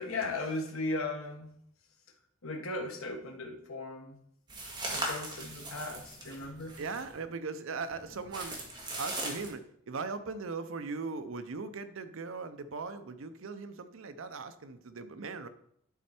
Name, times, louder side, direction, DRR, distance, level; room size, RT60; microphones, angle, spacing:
voice 1, 0.0-1.5 2.4-4.2 4.9-6.8, left 2 dB, 80° left, 4 dB, 1.2 m, -37 dB
sound 1, 4.5-7.2 7.8-9.5, right 1 dB, 20° right, 1.8 m, -39 dB
voice 2, 6.8-8.7 9.0-15.5, right 4 dB, 65° right, 11 dB, 0.6 m, -39 dB
10.5 x 4.4 x 4.3 m, 0.70 s
head